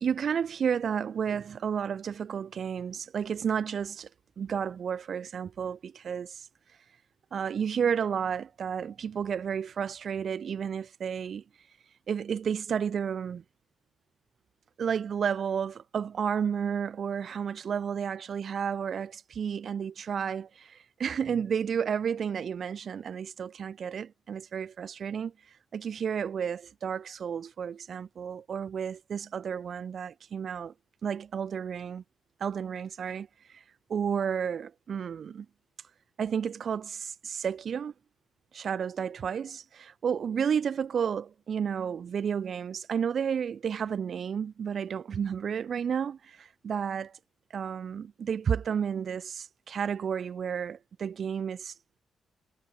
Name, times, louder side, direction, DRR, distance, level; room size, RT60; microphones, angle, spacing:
voice 1, 0.0-4.1 4.4-6.8 7.3-11.8 12.1-13.4 14.8-30.7 31.0-32.0 32.4-33.6 33.9-35.5 36.2-37.9 38.5-47.2 47.5-52.0, right 7 dB, 55° right, 0.6 m, -32 dB
cardioid pair, 95°, 0 cm